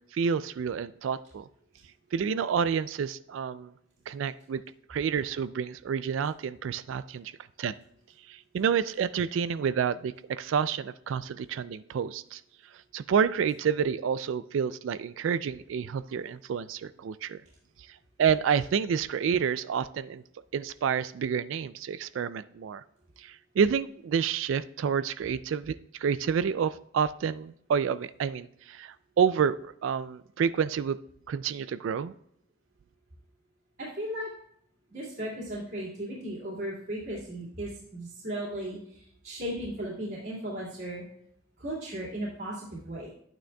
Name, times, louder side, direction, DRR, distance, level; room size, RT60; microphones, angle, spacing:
voice 1, 0.1-1.5 2.1-3.7 4.1-4.6 4.9-7.3 7.6-7.8 8.3-12.4 12.9-17.4 18.2-20.2 20.5-22.8 23.2-31.0 31.3-32.1, right 7 dB, 70° right, 14 dB, 0.3 m, -29 dB
voice 2, 33.8-34.3 34.9-41.0 41.6-43.1, right 1 dB, 50° right, -8 dB, 2.5 m, -36 dB
11.0 x 9.0 x 2.3 m, 0.69 s
head